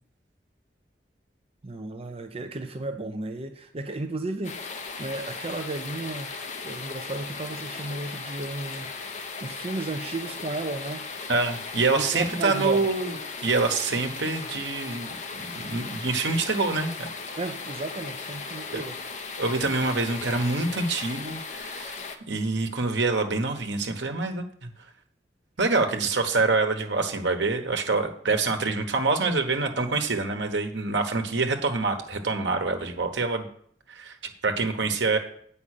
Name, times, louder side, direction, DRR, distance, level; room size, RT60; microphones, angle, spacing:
voice 1, 1.6-6.3 6.6-8.9 9.4-11.1 11.9-12.9 17.4-19.0, right 2 dB, 35° right, 6 dB, 0.6 m, -34 dB
sound 1, 4.4-22.2, left 4 dB, 45° left, 0.9 m, -37 dB
voice 2, 11.3-13.1 13.4-17.1 18.7-18.8 19.4-22.0 22.3-24.7 25.6-33.5 33.9-35.2, right 3 dB, 85° right, 5 dB, 1.2 m, -26 dB
8.7 x 5.4 x 6.6 m, 0.64 s
head